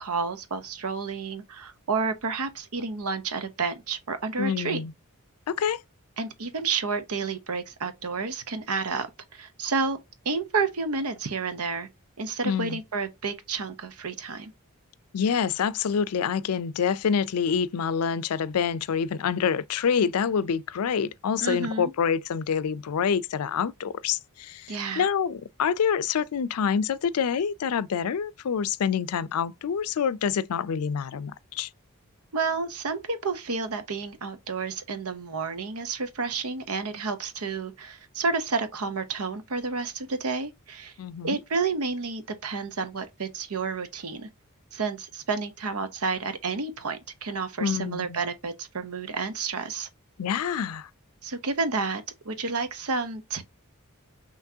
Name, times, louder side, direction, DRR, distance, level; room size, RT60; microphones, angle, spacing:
voice 1, 0.0-4.8 6.2-10.0 10.2-11.9 12.2-14.5 21.4-21.9 24.7-25.1 32.3-40.9 41.2-44.3 44.7-49.9 51.2-53.4, right 4 dB, 80° right, 0.9 m, -30 dB
voice 2, 4.4-4.9 5.5-5.8 12.4-12.8 15.1-31.7 41.0-41.4 47.6-48.2 50.2-50.9, left 7 dB, 90° left, 0.4 m, -27 dB
5.9 x 3.1 x 2.7 m
head